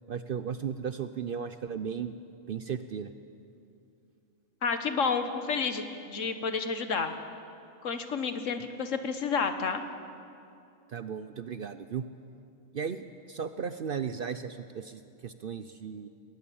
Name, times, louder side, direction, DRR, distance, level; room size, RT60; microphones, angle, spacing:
voice 1, 0.1-2.1 2.5-3.1 10.9-12.0 12.7-16.1, right 7 dB, 55° right, 10 dB, 0.7 m, -35 dB
voice 2, 4.6-7.1 7.8-9.8, left 5 dB, 70° left, 8 dB, 1.6 m, -30 dB
21.0 x 18.5 x 7.1 m, 2.6 s
omnidirectional pair, 1.4 m